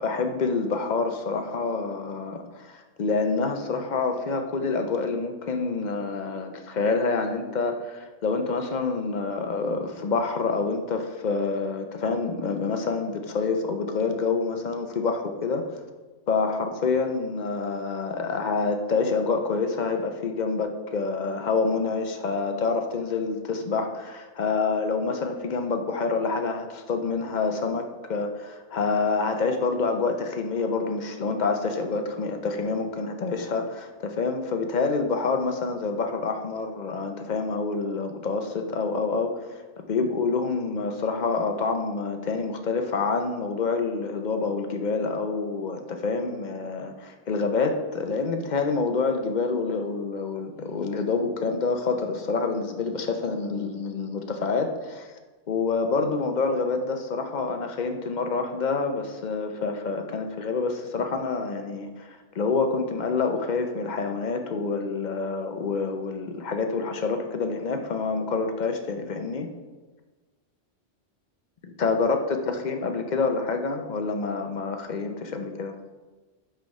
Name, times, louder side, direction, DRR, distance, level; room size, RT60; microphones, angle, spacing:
voice 1, 0.0-15.7 16.3-39.5 39.8-55.1 55.5-69.5 71.6-72.2 72.5-75.8, left 4 dB, 45° left, 5 dB, 0.7 m, -27 dB
9.0 x 3.4 x 5.2 m, 1.3 s
omnidirectional pair, 1.2 m